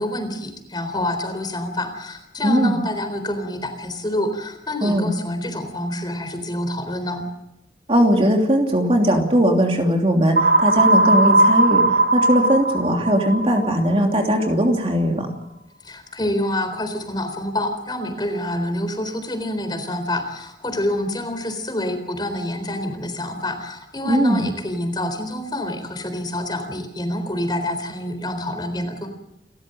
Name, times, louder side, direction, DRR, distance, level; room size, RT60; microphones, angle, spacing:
voice 1, 0.0-7.3 15.8-29.1, left 1 dB, 25° left, 7 dB, 3.9 m, -27 dB
voice 2, 2.4-2.7 4.8-5.1 7.9-11.8 12.1-15.3 24.0-24.4, equal, 30° right, 2 dB, 3.0 m, -19 dB
sound 1, 10.4-14.2, right 2 dB, 65° right, 2.7 m, -18 dB
29.5 x 14.0 x 7.9 m, 0.85 s
head